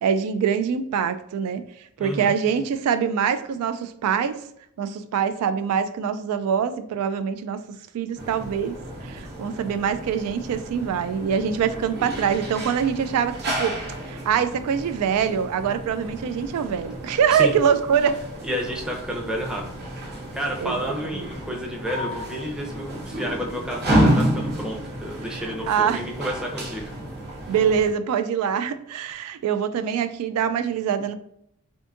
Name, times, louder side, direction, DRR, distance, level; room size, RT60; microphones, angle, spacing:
voice 1, 0.0-1.6 2.0-4.4 4.8-7.6 7.9-8.8 9.0-13.8 14.1-18.2 20.6-21.3 25.4-26.0 27.5-31.1, right 7 dB, 80° right, 13 dB, 0.3 m, -24 dB
voice 2, 2.0-2.3 17.3-17.5 18.4-19.7 20.3-26.9, equal, 5° right, -1 dB, 0.6 m, -30 dB
sound 1, 8.2-27.9, equal, 50° right, 0.8 m, -30 dB
3.6 x 2.6 x 2.5 m, 0.73 s
head